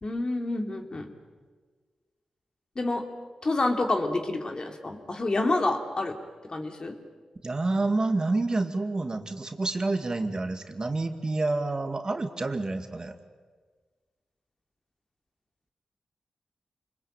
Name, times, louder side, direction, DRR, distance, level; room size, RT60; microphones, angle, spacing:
voice 1, 0.0-1.1 2.7-3.1 3.4-6.2 6.5-7.0, left 2 dB, 45° left, 4 dB, 3.0 m, -28 dB
voice 2, 7.4-13.1, right 2 dB, 40° right, 7 dB, 2.2 m, -28 dB
26.5 x 20.5 x 9.0 m, 1.5 s
cardioid pair, 55°, 2 cm